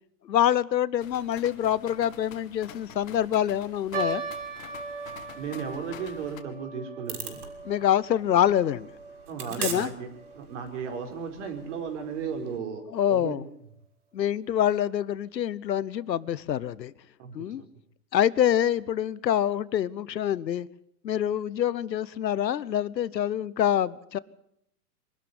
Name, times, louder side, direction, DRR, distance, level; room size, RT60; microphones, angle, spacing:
voice 1, 0.2-4.2 7.6-8.9 9.5-9.9 12.9-13.4 14.1-16.9 17.3-17.6 18.1-20.7 21.0-24.2, left 10 dB, 90° left, 20 dB, 1.1 m, -26 dB
sound 1, 1.0-6.4, left 9 dB, 55° left, 2.4 m, -47 dB
sound 2, 3.9-10.4 10.7-10.8 11.5-11.8 12.4-12.5 12.9-13.0, right 4 dB, 15° right, 3.4 m, -39 dB
voice 2, 5.3-7.4 9.3-10.1 10.4-12.8 13.1-13.4 17.2-17.7, right 6 dB, 45° right, 5 dB, 4.6 m, -35 dB
sound 3, 7.1-12.6, right 6 dB, 65° right, 6.3 m, -41 dB
24.5 x 12.5 x 9.8 m, 0.76 s
hypercardioid pair, 155°, 49 cm